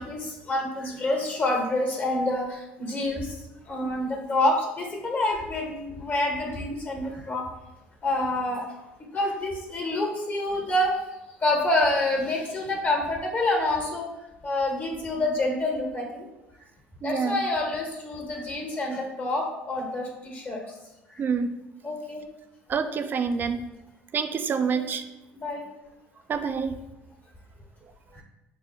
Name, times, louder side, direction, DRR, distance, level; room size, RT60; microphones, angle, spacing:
voice 1, 0.0-3.4 3.7-7.4 8.0-8.6 9.1-10.9 11.4-14.1 14.4-16.2 17.0-20.6 21.8-22.2 24.8-24.9 25.3-25.6 28.1-28.2, left 1 dB, 35° left, 0 dB, 1.3 m, -27 dB
voice 2, 17.0-17.4 21.2-21.5 22.7-23.6 24.1-25.0 26.3-26.8, right 6 dB, 40° right, 9 dB, 0.4 m, -27 dB
5.0 x 2.2 x 3.6 m, 1.0 s
hypercardioid pair, 70°, 5 cm